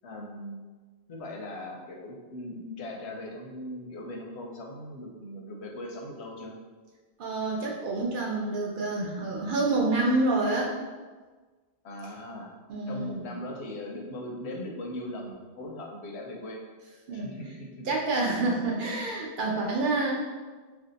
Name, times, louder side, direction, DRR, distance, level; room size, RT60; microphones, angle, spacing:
voice 1, 0.0-0.6 1.1-6.5 11.8-12.5 12.9-16.6 17.1-17.9, left 1 dB, 85° left, 0 dB, 0.9 m, -39 dB
voice 2, 7.2-10.7 12.7-13.3 17.1-17.3 17.9-20.1, right 2 dB, 60° right, -2 dB, 0.6 m, -28 dB
2.6 x 2.3 x 3.8 m, 1.4 s
omnidirectional pair, 1.1 m